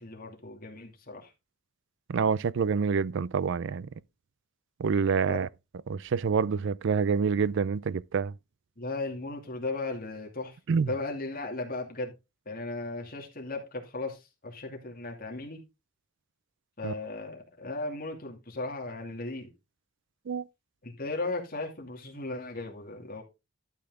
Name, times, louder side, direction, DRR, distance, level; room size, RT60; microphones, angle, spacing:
voice 1, 0.0-1.3 5.3-5.4 8.8-12.1 12.5-15.6 16.8-19.5 20.8-23.2, left 2 dB, 45° left, 2.5 m, -36 dB
voice 2, 2.1-3.9 4.8-5.5 5.9-8.3 10.7-10.9 16.8-16.9 20.3-20.4, right 5 dB, 60° right, 0.4 m, -27 dB
12.0 x 5.8 x 3.7 m
head